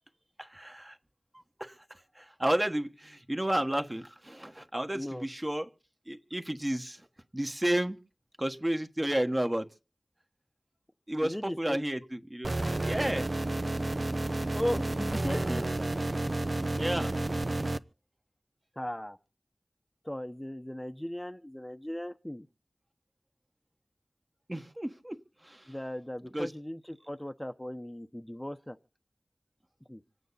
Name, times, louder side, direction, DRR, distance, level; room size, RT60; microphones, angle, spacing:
voice 1, 0.4-1.0 1.6-5.7 6.1-7.1 7.3-8.0 8.4-9.7 11.1-12.5 12.8-13.3 16.8-17.1 24.5-25.7 26.3-26.5, right 1 dB, 25° right, 1.4 m, -32 dB
voice 2, 4.9-5.2 11.2-11.8 14.5-15.7 18.8-19.2 20.0-22.5 25.7-28.8 29.9-30.0, left 1 dB, 15° left, 0.8 m, -37 dB
sound 1, 12.4-17.8, right 2 dB, 60° right, 0.8 m, -31 dB
26.5 x 9.2 x 4.1 m
wide cardioid pair, 45°, 0 cm